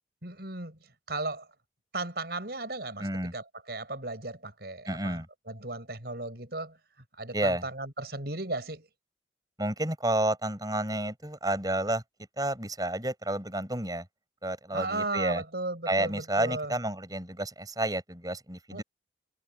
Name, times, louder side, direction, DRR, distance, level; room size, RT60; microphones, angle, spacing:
voice 1, 0.2-0.8 1.1-1.5 1.9-6.8 7.2-8.9 14.7-16.7 18.7-18.8, right 2 dB, 60° right, 5.3 m, -36 dB
voice 2, 3.0-3.3 4.9-5.3 7.3-7.6 9.6-12.0 12.4-14.0 14.4-15.4 15.9-18.8, right 1 dB, 20° right, 6.7 m, -30 dB
head